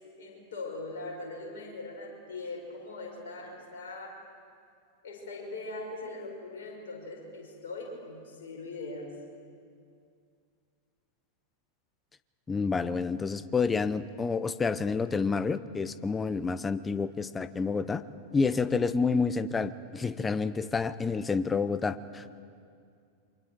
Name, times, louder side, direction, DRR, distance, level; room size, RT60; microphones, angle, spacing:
voice 1, 0.2-4.2 5.0-9.1, left 2 dB, 60° left, -1 dB, 5.4 m, -41 dB
voice 2, 12.5-18.0 18.3-22.4, left 4 dB, 15° left, 15 dB, 0.7 m, -29 dB
28.5 x 23.5 x 4.7 m, 2.3 s
figure-of-eight pair, 90°, 0 cm